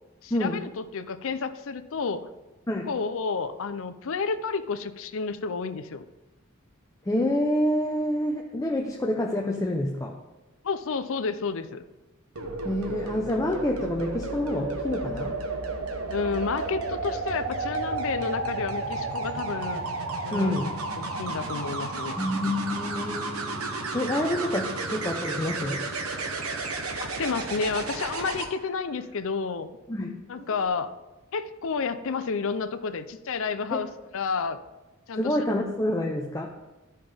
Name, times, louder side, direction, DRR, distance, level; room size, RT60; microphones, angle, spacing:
voice 1, 0.2-2.3 2.9-6.0 10.6-11.8 16.1-19.8 20.2-20.6 21.0-22.2 27.0-29.7 30.3-30.9 31.3-34.6 35.1-35.4, left 5 dB, 65° left, 11 dB, 0.5 m, -30 dB
voice 2, 7.1-10.2 12.6-15.4 20.3-20.7 22.2-25.9 29.9-30.3 33.7-33.8 35.2-36.5, left 1 dB, 15° left, 0 dB, 0.6 m, -28 dB
sound 1, 12.4-28.5 30.4-30.6, right 3 dB, 90° right, 1.1 m, -32 dB
13.0 x 5.5 x 3.4 m, 1.1 s
head